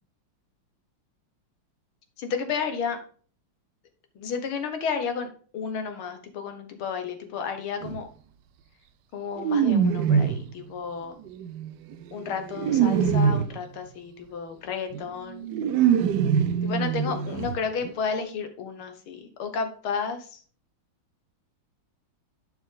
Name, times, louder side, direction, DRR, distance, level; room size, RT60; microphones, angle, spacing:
voice 1, 2.2-3.0 4.2-8.1 9.1-11.2 12.1-15.5 16.6-20.4, left 6 dB, 75° left, 7 dB, 2.0 m, -32 dB
sound 1, 7.8-8.0 9.4-10.5 11.3-13.6 14.9-15.0 15.3-17.6 17.8-17.9 18.2-18.3, right 7 dB, 70° right, 1.0 m, -24 dB
10.5 x 4.7 x 3.7 m, 0.43 s
omnidirectional pair, 2.4 m